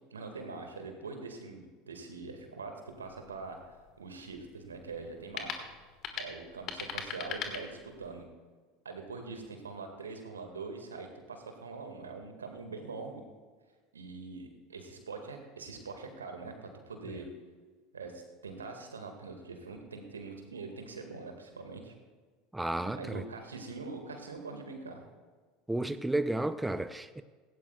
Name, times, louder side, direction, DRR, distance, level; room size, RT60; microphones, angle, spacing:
voice 1, 0.1-2.7 3.0-5.7 6.2-8.3 8.9-13.2 13.9-17.3 17.9-21.9 22.8-25.0, right 4 dB, 80° right, 1.8 m, -43 dB
sound 1, 2.9-8.2, left 7 dB, 45° left, 1.7 m, -42 dB
voice 2, 22.5-23.2 25.7-27.2, right 1 dB, 5° right, 0.5 m, -32 dB
17.0 x 16.5 x 2.3 m
figure-of-eight pair, 75°, 0 cm